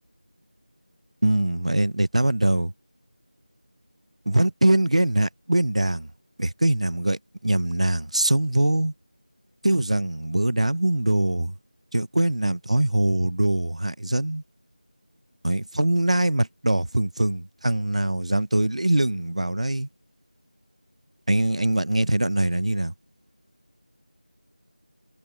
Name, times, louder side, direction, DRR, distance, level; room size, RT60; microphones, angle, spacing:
voice 1, 1.2-2.7 4.3-6.1 6.4-8.9 9.6-11.5 11.9-14.4 15.4-19.9 21.3-22.9, right 1 dB, 45° right, 0.9 m, -23 dB
figure-of-eight pair, 180°, 5 cm